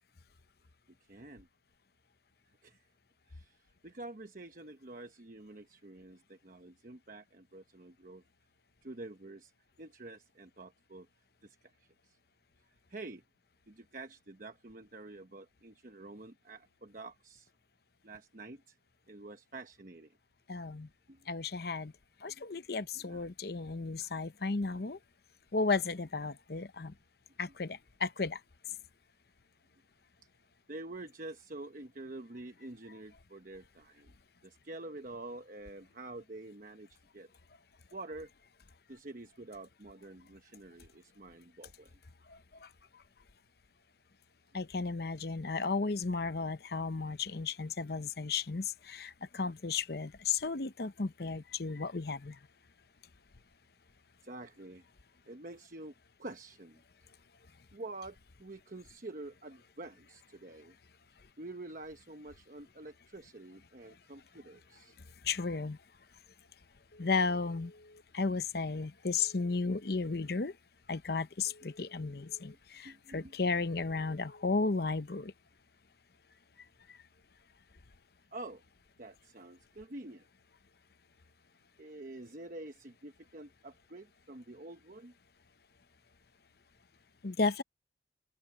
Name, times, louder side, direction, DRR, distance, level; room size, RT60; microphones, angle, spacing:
voice 1, 1.1-1.5 2.6-2.9 3.3-3.6 3.8-8.2 8.8-9.5 9.8-11.1 11.4-12.2 12.9-13.2 13.7-17.5 18.0-18.8 19.1-20.1 21.1-21.3 22.3-22.6 22.9-23.3 24.0-24.1 24.6-24.8 30.7-34.1 34.4-37.3 37.9-38.3 38.9-41.9 54.2-54.9 55.3-55.9 56.2-56.8 57.7-60.7 61.4-65.0 72.8-73.4 78.3-78.6 79.0-80.3 81.8-85.1, right 2 dB, 45° right, 1.0 m, -48 dB
voice 2, 20.5-20.9 21.3-21.9 22.2-25.0 25.5-26.9 27.4-28.4 42.3-42.4 44.5-52.4 65.2-65.8 67.0-67.7 68.1-70.5 70.9-75.3 87.2-87.6, left 4 dB, 55° left, 0.8 m, -34 dB
Telephone, 66.9-68.0 69.2-70.3 71.5-72.6 73.7-74.8, left 1 dB, 75° left, 4.4 m, -58 dB
open air
head